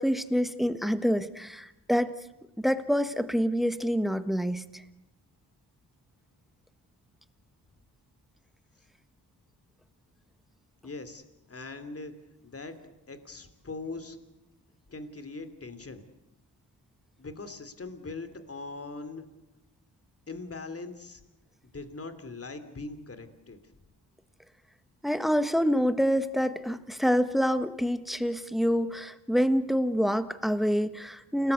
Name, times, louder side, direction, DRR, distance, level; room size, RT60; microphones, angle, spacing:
voice 1, 0.0-2.1 2.6-4.6 25.0-31.5, equal, ahead, 11 dB, 1.5 m, -26 dB
voice 2, 10.8-11.2 11.5-12.1 12.4-12.8 13.1-14.2 14.9-16.0 17.2-19.3 20.3-21.2 21.7-23.6, left 3 dB, 35° left, 10 dB, 3.0 m, -41 dB
29.0 x 19.0 x 8.3 m, 0.92 s
cardioid pair, 90°, 40 cm